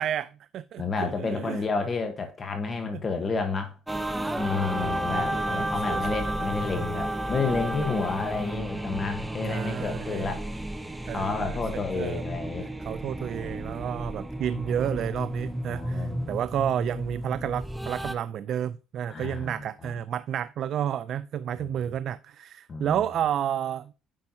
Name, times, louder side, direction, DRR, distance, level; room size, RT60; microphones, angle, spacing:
voice 1, 0.0-1.6 4.8-6.3 9.5-10.4 11.1-12.2 12.9-23.9, right 10 dB, 55° right, 0.3 m, -31 dB
voice 2, 0.8-3.7 4.3-10.4 11.1-12.7 15.6-16.3 19.1-20.0 21.6-21.7 22.7-23.0, left 4 dB, 30° left, 1.1 m, -30 dB
sound 1, 3.9-18.1, right 1 dB, 5° right, 0.6 m, -32 dB
8.8 x 5.4 x 2.7 m
cardioid pair, 120°, 0 cm